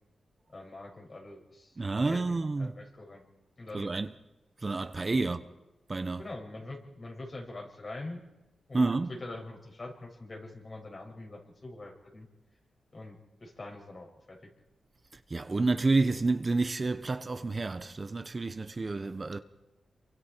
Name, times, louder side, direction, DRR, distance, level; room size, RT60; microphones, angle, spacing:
voice 1, 0.5-1.8 2.0-3.3 3.6-3.9 5.2-5.4 6.2-8.2 8.7-12.3 12.9-14.5, left 2 dB, 40° left, 6.2 m, -44 dB
voice 2, 1.8-2.8 3.7-4.1 4.6-5.4 5.9-6.3 8.7-9.2 15.3-19.4, right 3 dB, 35° right, 1.0 m, -29 dB
28.0 x 24.0 x 4.6 m
cardioid pair, 70°, 0 cm